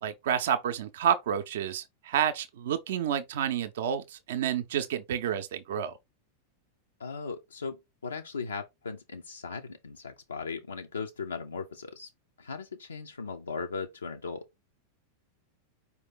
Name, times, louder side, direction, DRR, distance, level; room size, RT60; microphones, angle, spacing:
voice 1, 0.0-6.0, right 9 dB, 55° right, 0.5 m, -29 dB
voice 2, 7.0-12.1 12.4-14.5, left 4 dB, 75° left, 0.4 m, -38 dB
4.9 x 2.8 x 3.8 m
figure-of-eight pair, 90°, 0 cm